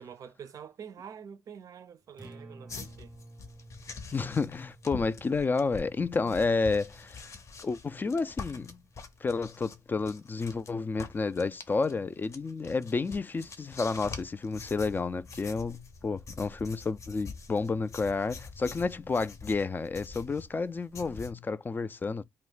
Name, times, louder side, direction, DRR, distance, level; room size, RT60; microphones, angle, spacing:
voice 1, 0.0-3.1, right 7 dB, 55° right, 0.5 m, -46 dB
Acoustic guitar, 2.0-10.2, right 2 dB, 15° right, 0.6 m, -54 dB
sound 1, 2.7-10.7 11.0-21.3, left 4 dB, 45° left, 0.7 m, -45 dB
voice 2, 4.1-7.2 7.6-8.8 9.2-22.2, left 4 dB, 30° left, 0.3 m, -30 dB
2.4 x 2.1 x 3.9 m
cardioid pair, 75°, 7 cm